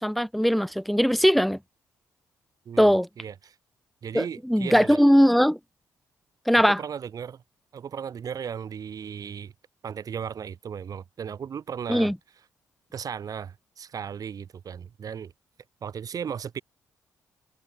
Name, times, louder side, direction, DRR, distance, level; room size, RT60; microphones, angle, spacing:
voice 1, 0.0-1.6 2.8-3.1 4.1-5.6 6.5-6.8 11.9-12.2, equal, ahead, 1.4 m, -20 dB
voice 2, 2.6-3.5 4.0-5.0 6.8-7.4 7.7-9.5 9.8-12.1 12.9-15.3 15.8-16.6, right 7 dB, 55° right, 1.3 m, -36 dB
supercardioid pair, 55°, 7 cm